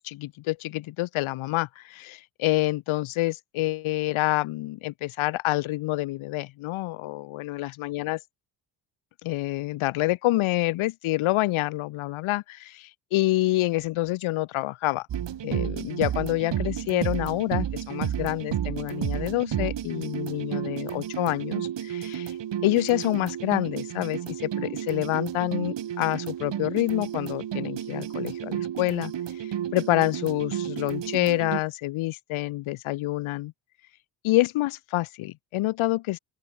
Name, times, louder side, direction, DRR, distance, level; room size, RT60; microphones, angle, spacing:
voice 1, 0.0-8.2 9.2-15.1 15.4-22.4 22.6-33.5 34.2-36.2, left 18 dB, 75° left, 4.2 m, -27 dB
sound 1, 15.1-31.6, right 10 dB, 60° right, 5.9 m, -32 dB
open air
hypercardioid pair, 55°, 48 cm